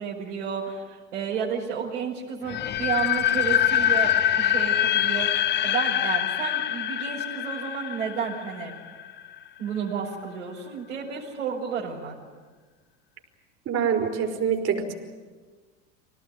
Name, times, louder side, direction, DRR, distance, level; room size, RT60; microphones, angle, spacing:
voice 1, 0.0-8.7 9.6-12.2, right 6 dB, 80° right, -7 dB, 5.4 m, -31 dB
sound 1, 2.5-9.3, left 11 dB, 30° left, 0.7 m, -24 dB
voice 2, 13.6-14.9, right 7 dB, 40° right, 2 dB, 5.1 m, -25 dB
25.5 x 18.5 x 9.4 m, 1.4 s
hypercardioid pair, 90°, 37 cm